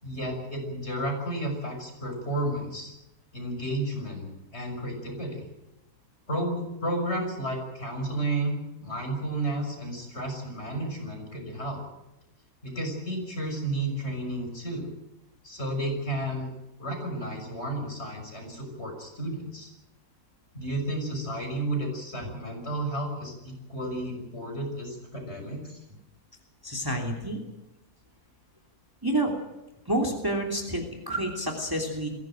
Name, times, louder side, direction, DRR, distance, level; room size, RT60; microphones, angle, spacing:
voice 1, 0.0-2.9 3.3-4.3 4.5-5.5 6.3-11.8 12.6-14.9 15.4-16.5 16.8-19.7 20.5-25.8, right 1 dB, 40° left, 3 dB, 6.5 m, -32 dB
voice 2, 26.6-27.4 29.0-29.3 29.9-32.1, right 1 dB, 15° right, 2 dB, 3.0 m, -28 dB
22.0 x 17.0 x 9.1 m, 0.96 s
omnidirectional pair, 1.7 m